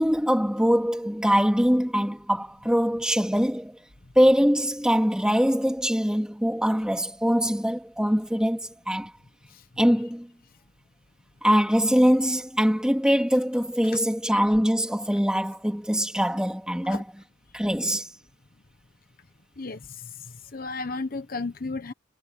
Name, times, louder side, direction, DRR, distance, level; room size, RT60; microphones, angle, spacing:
voice 1, 0.0-3.7 4.1-9.1 9.8-10.3 11.4-17.2 17.5-18.1, equal, 5° right, 3.3 m, -23 dB
voice 2, 20.5-21.9, left 3 dB, 45° left, 1.0 m, -33 dB
head